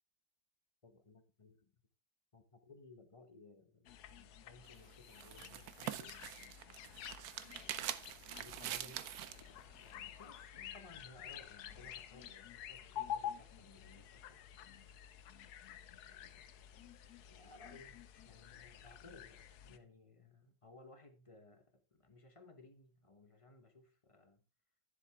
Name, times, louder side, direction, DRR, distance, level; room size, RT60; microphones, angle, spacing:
voice 1, 0.8-1.7 2.3-6.2 7.5-14.5 16.0-16.5 17.2-24.4, left 3 dB, 25° left, 1.0 m, -60 dB
sound 1, 3.9-19.8, left 10 dB, 80° left, 1.2 m, -50 dB
sound 2, 4.6-9.5, right 11 dB, 75° right, 1.1 m, -44 dB
10.5 x 7.4 x 3.5 m
omnidirectional pair, 1.7 m